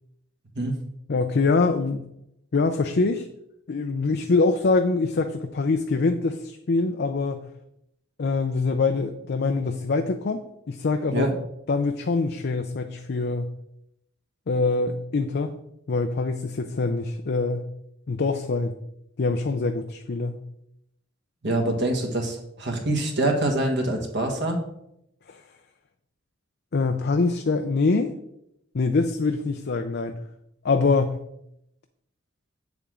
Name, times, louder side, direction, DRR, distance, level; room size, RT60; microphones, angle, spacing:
voice 1, 1.1-2.0 2.5-3.3 3.7-7.5 8.2-11.3 11.7-13.5 14.5-15.5 15.9-17.7 18.1-18.7 19.2-20.4 25.3-25.4 26.7-28.1 28.7-30.2 30.6-31.2, left 3 dB, 55° left, 6 dB, 0.5 m, -24 dB
voice 2, 21.4-24.6, right 1 dB, 60° right, 3 dB, 1.6 m, -25 dB
8.0 x 7.0 x 3.7 m, 0.78 s
head